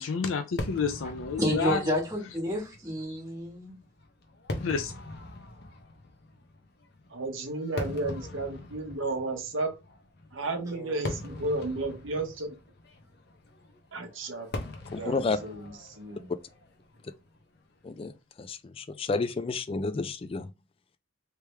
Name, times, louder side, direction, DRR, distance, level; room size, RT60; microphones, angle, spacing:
voice 1, 0.0-1.8 4.6-4.9, left 5 dB, 85° left, 0.5 m, -29 dB
Fireworks, 0.6-17.9, left 2 dB, 55° left, 0.7 m, -42 dB
voice 2, 1.4-3.8 10.7-10.9, equal, 15° right, 1.7 m, -30 dB
voice 3, 7.1-9.7 10.3-12.5 13.9-14.5 15.0-16.3, right 2 dB, 80° right, 0.9 m, -33 dB
voice 4, 14.9-15.4 17.8-18.1 18.4-20.5, left 3 dB, 30° left, 0.3 m, -30 dB
3.3 x 3.1 x 3.3 m
head